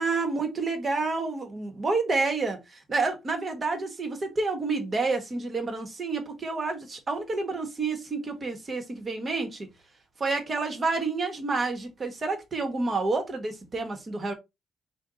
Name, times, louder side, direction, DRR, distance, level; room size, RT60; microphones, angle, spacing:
voice 1, 0.0-9.7 10.2-14.3, right 3 dB, 35° right, 1.2 m, -29 dB
3.4 x 2.2 x 3.8 m
cardioid pair, 90°, 0 cm